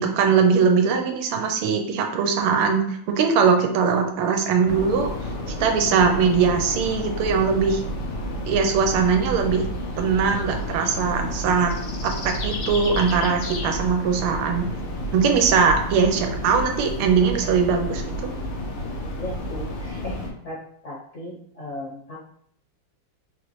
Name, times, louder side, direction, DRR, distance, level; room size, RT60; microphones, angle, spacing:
voice 1, 0.0-5.1 5.6-7.8 8.4-9.7 10.0-11.7 12.0-14.7 15.1-18.3, right 5 dB, 90° right, 4 dB, 1.6 m, -21 dB
sound 1, 4.7-20.3, equal, 90° left, 1.8 m, -30 dB
voice 2, 19.1-20.2 20.4-20.6 20.8-22.2, left 1 dB, 50° left, -4 dB, 0.9 m, -36 dB
4.3 x 3.1 x 3.1 m, 0.67 s
omnidirectional pair, 2.4 m